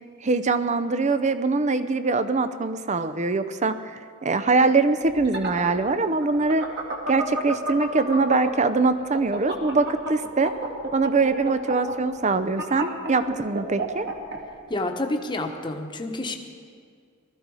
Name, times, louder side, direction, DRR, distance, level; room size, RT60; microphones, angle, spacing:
voice 1, 0.2-6.6 7.1-10.5 10.9-14.1, right 3 dB, 35° right, 11 dB, 0.6 m, -23 dB
sound 1, 5.1-8.7 9.0-14.4, right 2 dB, 55° right, 2.3 m, -30 dB
voice 2, 14.7-16.4, left 2 dB, 20° left, 4 dB, 1.2 m, -28 dB
20.5 x 14.0 x 4.9 m, 2.1 s
head